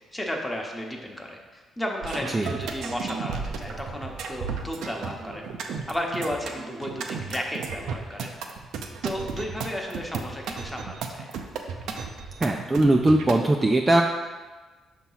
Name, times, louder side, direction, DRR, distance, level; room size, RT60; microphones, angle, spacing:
voice 1, 0.1-5.5 5.9-8.4 9.0-11.3, equal, 10° left, 0 dB, 1.0 m, -33 dB
sound 1, 2.0-13.4, right 5 dB, 80° right, 0.5 m, -34 dB
voice 2, 12.4-14.0, right 1 dB, 20° right, 2 dB, 0.4 m, -20 dB
5.8 x 2.9 x 5.5 m, 1.3 s
cardioid pair, 90°, 0 cm